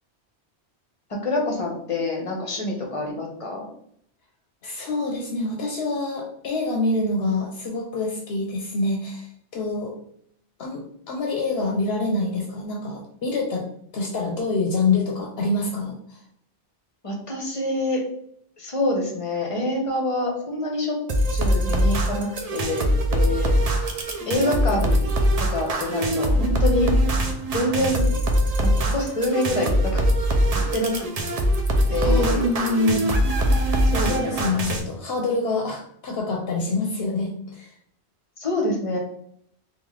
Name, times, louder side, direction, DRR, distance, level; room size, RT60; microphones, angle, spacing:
voice 1, 1.1-3.7 17.0-18.0 18.6-21.0 21.3-23.5 24.3-25.0 25.4-26.9 27.5-28.1 28.6-30.4 30.7-31.1 31.9-32.9 33.8-34.4 38.4-39.0, left 1 dB, 35° left, 0 dB, 0.7 m, -26 dB
voice 2, 4.6-9.9 10.6-13.7 13.9-16.2 32.0-33.1 34.1-37.7, left 2 dB, 70° left, 1 dB, 0.8 m, -26 dB
sound 1, 21.1-34.8, equal, 50° right, 0.5 m, -22 dB
3.7 x 2.4 x 3.1 m, 0.67 s
omnidirectional pair, 1.1 m